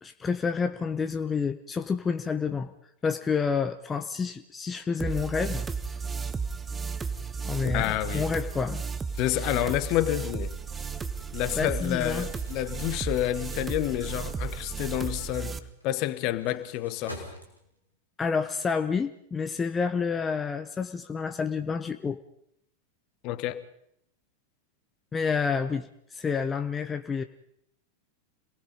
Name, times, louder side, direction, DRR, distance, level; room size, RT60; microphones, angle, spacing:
voice 1, 0.0-2.7 3.0-5.6 7.4-8.8 9.4-9.7 11.6-12.3 18.2-22.2 25.1-27.2, left 5 dB, 15° left, 0.9 m, -29 dB
sound 1, 5.0-15.6, right 5 dB, 15° right, 1.0 m, -34 dB
voice 2, 7.6-8.3 9.2-10.5 11.3-15.6 15.8-17.3 23.2-23.6, left 14 dB, 40° left, 1.3 m, -29 dB
Crumpling crinkling, 11.8-17.9, equal, 90° right, 3.8 m, -49 dB
27.0 x 19.0 x 5.4 m
figure-of-eight pair, 90°, 0 cm